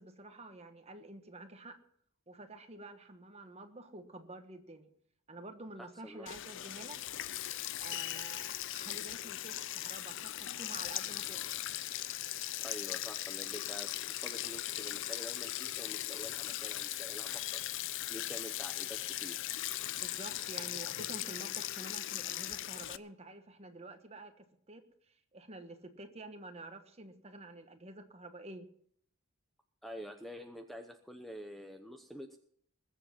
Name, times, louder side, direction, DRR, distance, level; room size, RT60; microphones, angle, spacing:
voice 1, 0.0-1.8 2.3-4.9 5.3-7.0 7.8-11.4 19.9-24.8 25.1-28.7, right 2 dB, 30° right, 7 dB, 1.3 m, -49 dB
Sink (filling or washing), 6.3-23.0, left 13 dB, 60° left, 0.5 m, -39 dB
voice 2, 12.6-17.7 18.1-19.4 29.8-32.4, equal, ahead, 5 dB, 0.8 m, -47 dB
21.0 x 7.4 x 5.8 m, 0.65 s
head